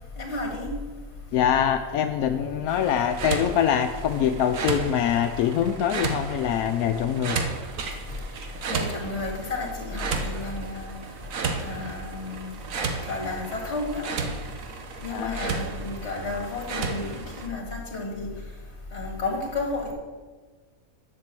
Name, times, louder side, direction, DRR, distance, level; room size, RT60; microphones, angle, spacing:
voice 1, 0.2-0.7 8.7-10.9 11.6-12.5 13.1-14.1 15.0-18.3 18.9-19.9, left 3 dB, 50° left, 1 dB, 2.3 m, -32 dB
voice 2, 1.3-7.4 15.1-15.4, left 9 dB, 85° left, 7 dB, 1.1 m, -24 dB
sound 1, 2.7-17.5, right 4 dB, 70° right, 1.3 m, -33 dB
7.5 x 6.8 x 7.5 m, 1.4 s
omnidirectional pair, 1.5 m